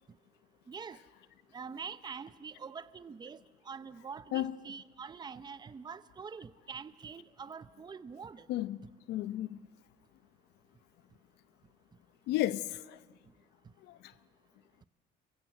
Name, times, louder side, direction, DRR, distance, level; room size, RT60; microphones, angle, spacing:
voice 1, 0.7-1.0 1.5-8.5, right 6 dB, 25° right, 0.8 m, -45 dB
voice 2, 9.1-9.6 12.3-13.0 13.9-14.1, left 14 dB, 85° left, 0.7 m, -33 dB
28.0 x 23.0 x 8.0 m
cardioid pair, 110°, 17 cm